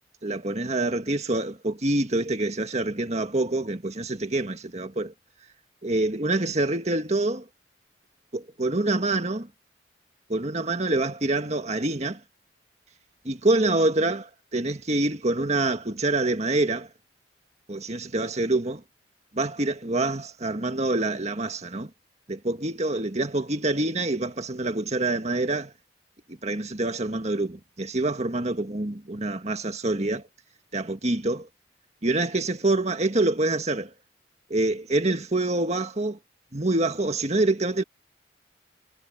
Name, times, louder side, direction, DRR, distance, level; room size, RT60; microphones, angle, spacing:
voice 1, 0.2-5.1 5.8-7.4 8.3-9.5 10.3-12.2 13.3-16.9 17.7-18.8 19.3-21.9 22.3-25.7 26.4-30.2 30.7-31.5 32.0-33.9 34.5-36.2 36.5-37.8, right 2 dB, 35° right, 1.8 m, -26 dB
head